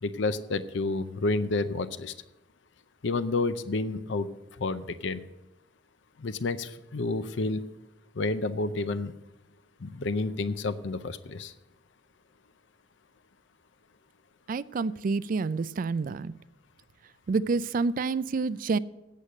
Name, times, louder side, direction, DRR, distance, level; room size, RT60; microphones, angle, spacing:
voice 1, 0.0-2.1 3.0-4.3 4.6-5.2 6.2-7.6 8.2-9.1 9.8-11.5, left 3 dB, 70° left, 13 dB, 0.6 m, -30 dB
voice 2, 14.5-16.3 17.3-18.8, right 4 dB, 45° right, 17 dB, 0.3 m, -28 dB
8.4 x 8.1 x 7.6 m, 0.97 s
head